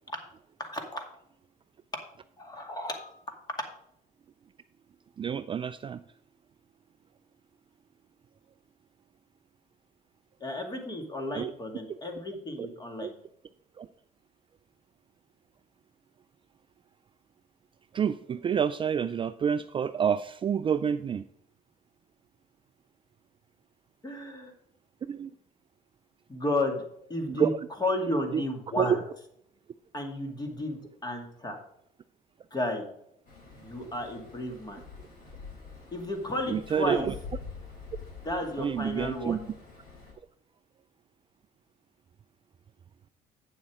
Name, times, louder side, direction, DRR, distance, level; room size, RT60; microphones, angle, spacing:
voice 1, 0.6-1.1 1.9-2.0 2.4-3.4 10.4-13.1 24.0-24.5 26.3-26.8 27.1-27.5 27.8-29.0 29.9-31.6 32.5-32.9 33.5-34.8 35.9-37.1 38.2-39.5, left 1 dB, 25° left, 4 dB, 2.3 m, -33 dB
voice 2, 5.2-6.0 11.3-11.5 11.9-12.0 12.6-12.7 13.0-13.1 13.8-13.9 17.9-21.3 25.0-25.3 27.3-27.6 28.3-28.4 28.8-29.0 36.5-37.1 38.6-39.4, right 8 dB, 30° right, 12 dB, 0.3 m, -28 dB
sound 1, 33.3-40.1, left 5 dB, 60° left, 4.5 m, -46 dB
8.9 x 7.2 x 4.9 m, 0.73 s
cardioid pair, 110°, 17 cm